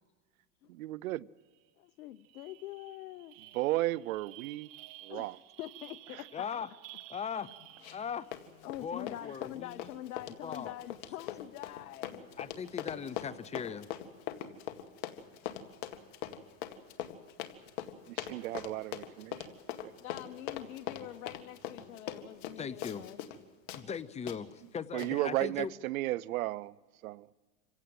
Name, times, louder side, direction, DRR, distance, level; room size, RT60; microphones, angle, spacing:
voice 1, 0.7-1.3 3.5-4.7 5.0-5.4 6.1-6.2 18.1-19.5 19.8-19.9 24.9-26.8 27.0-27.3, right 17 dB, 75° right, 0.7 m, -34 dB
sound 1, 1.6-1.7 2.0-8.4, right 17 dB, 50° right, 1.6 m, -53 dB
voice 2, 1.8-3.4 5.1-6.5 7.9-8.0 8.6-12.3 20.0-23.2, left 13 dB, 80° left, 0.8 m, -45 dB
voice 3, 6.3-6.7 7.1-7.5 7.9-8.3 8.8-9.9 10.4-10.7 12.4-13.9 22.6-23.1 23.7-25.7, left 7 dB, 15° left, 0.6 m, -39 dB
Run, 7.8-8.1 8.3-23.4 23.7-23.8 24.3-24.4 25.0-25.1, left 11 dB, 55° left, 2.0 m, -41 dB
27.0 x 16.5 x 7.8 m
hypercardioid pair, 120°, 42 cm